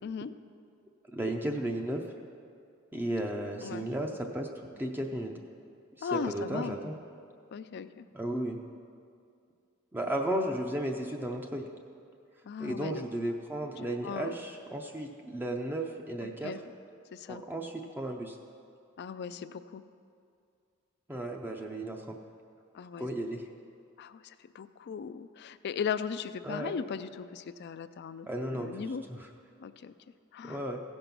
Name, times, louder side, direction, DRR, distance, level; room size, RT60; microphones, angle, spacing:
voice 1, 0.0-0.3 3.6-3.9 6.0-6.8 7.5-8.1 12.4-13.1 14.0-14.4 16.2-16.6 17.1-17.4 19.0-19.8 22.7-23.1 24.0-29.0 29.6-29.9 30.3-30.6, left 6 dB, 50° left, 12 dB, 0.3 m, -37 dB
voice 2, 1.1-2.0 2.9-4.5 4.8-5.3 6.0-6.9 8.1-8.6 9.9-11.7 12.6-16.5 17.3-18.4 21.1-22.2 23.0-23.4 26.4-26.7 28.3-29.2 30.4-30.8, right 1 dB, 10° right, 2 dB, 0.5 m, -34 dB
15.5 x 5.4 x 5.9 m, 2.4 s
head